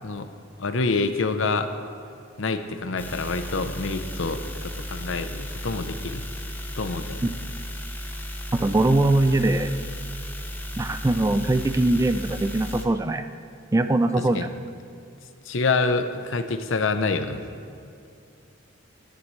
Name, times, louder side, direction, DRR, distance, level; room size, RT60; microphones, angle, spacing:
voice 1, 0.6-1.7 2.4-6.3 6.8-7.3 14.2-14.5 15.4-17.4, left 3 dB, 70° left, 9 dB, 0.7 m, -27 dB
sound 1, 3.0-12.8, equal, 10° left, 0.7 m, -35 dB
voice 2, 8.5-9.7 10.8-13.3 13.7-14.5, right 2 dB, 15° right, 10 dB, 0.3 m, -21 dB
17.5 x 10.5 x 3.2 m, 2.4 s
head